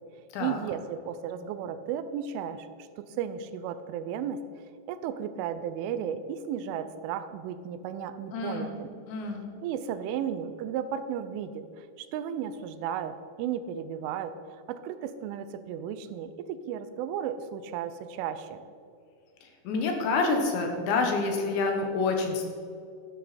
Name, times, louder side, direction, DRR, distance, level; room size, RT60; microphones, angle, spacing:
voice 1, 0.4-2.7 3.0-4.4 4.9-8.9 9.6-18.6, right 8 dB, 90° right, 11 dB, 3.2 m, -34 dB
voice 2, 8.3-8.7 9.1-9.5 19.4-22.5, left 3 dB, 70° left, 3 dB, 3.5 m, -28 dB
12.5 x 11.0 x 4.3 m, 2.5 s
omnidirectional pair, 5.5 m